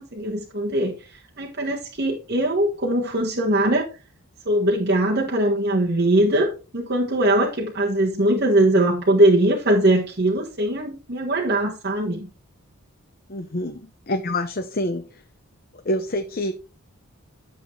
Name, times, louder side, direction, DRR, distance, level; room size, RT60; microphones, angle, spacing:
voice 1, 0.1-3.9 4.4-12.3, right 1 dB, 45° right, 1.5 m, -21 dB
voice 2, 13.3-15.2 15.8-16.5, left 1 dB, 40° left, 0.8 m, -27 dB
11.5 x 7.4 x 3.2 m
head